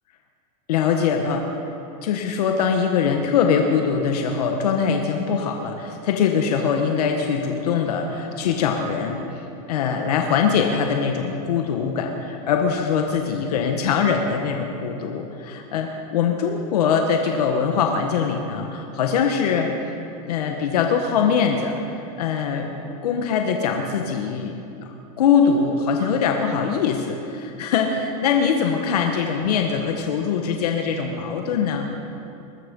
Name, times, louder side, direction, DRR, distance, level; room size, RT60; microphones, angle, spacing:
voice 1, 0.7-1.5 2.0-19.7 20.2-22.7 23.0-24.6 24.8-31.9, left 6 dB, 90° left, 3 dB, 1.4 m, -22 dB
21.0 x 12.5 x 5.4 m, 2.7 s
supercardioid pair, 150°, 19 cm